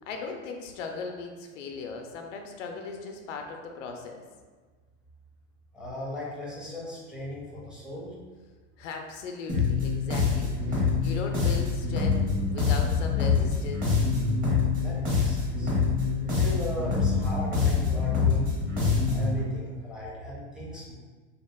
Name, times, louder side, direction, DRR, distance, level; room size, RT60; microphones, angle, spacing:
voice 1, 0.0-4.2 8.8-13.9, left 4 dB, 85° left, 3 dB, 0.5 m, -38 dB
voice 2, 5.7-8.2 14.8-15.7 16.3-18.5 19.0-20.9, left 1 dB, ahead, -6 dB, 0.6 m, -37 dB
sound 1, 9.5-19.4, left 5 dB, 25° right, 0.9 m, -25 dB
2.8 x 2.4 x 2.2 m, 1.4 s
supercardioid pair, 115°, 36 cm